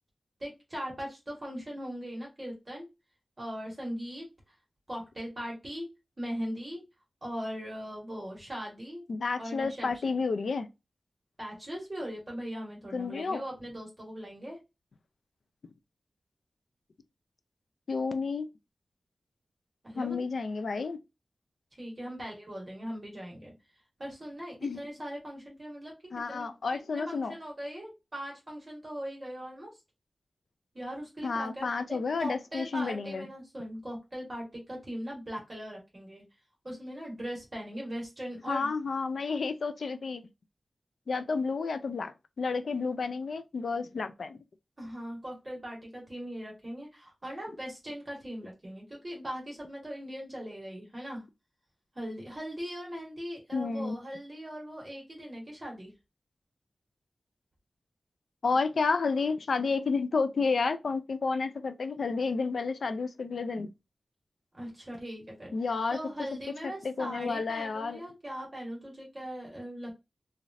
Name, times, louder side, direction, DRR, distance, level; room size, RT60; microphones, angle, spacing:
voice 1, 0.4-2.9 3.4-4.5 4.9-5.9 6.2-6.8 7.2-9.0 9.4-10.2 11.4-14.6 19.8-20.2 21.8-23.5 24.0-25.9 26.3-26.5 26.7-29.7 30.7-36.2 36.6-38.7 44.8-51.2 51.9-55.9 64.5-65.5 65.9-69.9, equal, 30° right, 1.5 m, -40 dB
voice 2, 9.1-10.7 12.9-13.4 17.9-18.5 20.0-21.0 24.6-24.8 26.1-27.3 31.2-33.3 38.5-40.2 41.1-44.4 53.5-54.0 58.4-63.7 65.5-66.0 66.8-68.0, left 4 dB, 75° left, 0.4 m, -31 dB
3.1 x 2.5 x 2.6 m
wide cardioid pair, 85°, 0 cm